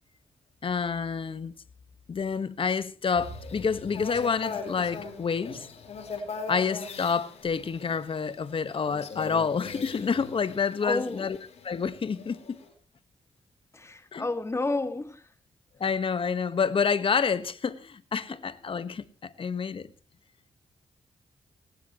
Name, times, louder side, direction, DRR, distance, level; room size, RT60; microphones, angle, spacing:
voice 1, 0.6-1.5 2.1-5.7 6.5-11.4 11.6-12.6 14.1-14.2 15.8-19.9, left 6 dB, 50° left, 1.4 m, -28 dB
bird-park, 3.1-12.7, left 4 dB, 70° left, 4.4 m, -40 dB
voice 2, 10.8-11.3 13.7-15.2, left 2 dB, 25° left, 2.0 m, -30 dB
20.0 x 19.0 x 3.1 m
cardioid pair, 60°, 11 cm